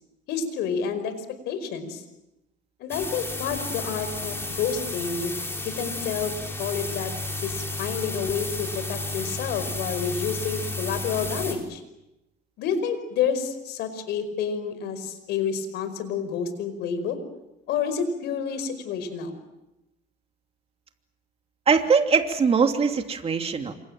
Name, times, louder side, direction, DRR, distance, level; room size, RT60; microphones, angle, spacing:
voice 1, 0.3-1.1 1.5-2.0 2.8-5.3 5.6-6.3 6.6-7.1 7.4-11.8 12.6-17.2 17.7-19.3, left 7 dB, 80° left, 10 dB, 5.2 m, -29 dB
sound 1, 2.9-11.5, left 2 dB, 15° left, 6.6 m, -32 dB
voice 2, 21.7-23.7, right 5 dB, 35° right, 5 dB, 2.9 m, -21 dB
28.5 x 25.5 x 7.7 m, 0.95 s
cardioid pair, 110°, 17 cm